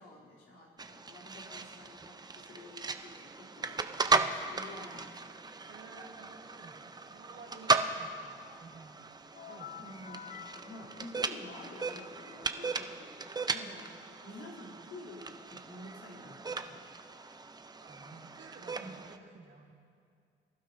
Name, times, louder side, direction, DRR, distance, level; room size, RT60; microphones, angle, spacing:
voice 1, 0.0-5.1 9.8-13.9 14.2-16.8 18.7-18.9, left 1 dB, 90° left, -6 dB, 3.3 m, -50 dB
sound 1, 0.8-19.2, right 3 dB, 20° right, 0.6 m, -36 dB
voice 2, 5.7-9.2 9.5-9.9 17.8-19.7, right 4 dB, 65° right, -2 dB, 2.5 m, -53 dB
sound 2, 9.3-12.9, left 9 dB, 45° left, 0.4 m, -50 dB
24.0 x 12.0 x 2.7 m, 2.3 s
cardioid pair, 90°, 20 cm